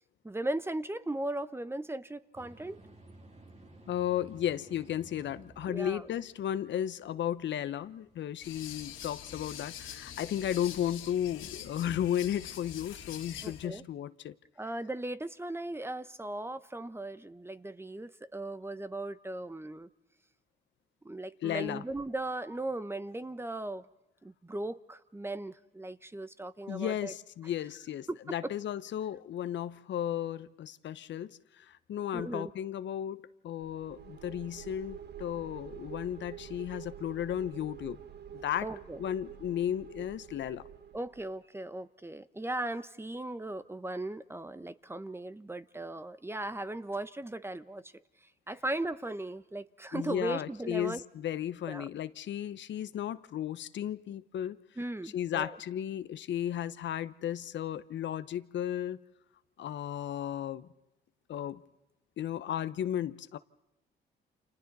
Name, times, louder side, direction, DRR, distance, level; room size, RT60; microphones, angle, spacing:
voice 1, 0.2-2.8 5.7-6.0 13.4-13.8 14.6-19.9 21.0-23.9 24.2-27.1 28.1-28.5 32.1-32.5 38.6-39.0 40.9-47.9 48.5-51.0 51.7-51.9 54.8-55.6, right 2 dB, 10° right, 0.9 m, -37 dB
sound 1, 2.3-10.4, right 2 dB, 35° right, 3.1 m, -57 dB
voice 2, 3.9-14.3 21.4-21.8 26.7-38.0 38.4-38.7 39.0-40.6 49.9-54.6 55.0-59.0 59.6-60.7 61.3-61.6 62.2-63.4, left 10 dB, 65° left, 0.9 m, -34 dB
sound 2, 8.4-13.7, left 9 dB, 85° left, 2.6 m, -45 dB
sound 3, 33.6-41.4, right 10 dB, 55° right, 1.5 m, -48 dB
30.0 x 28.0 x 4.2 m
cardioid pair, 90°, 20 cm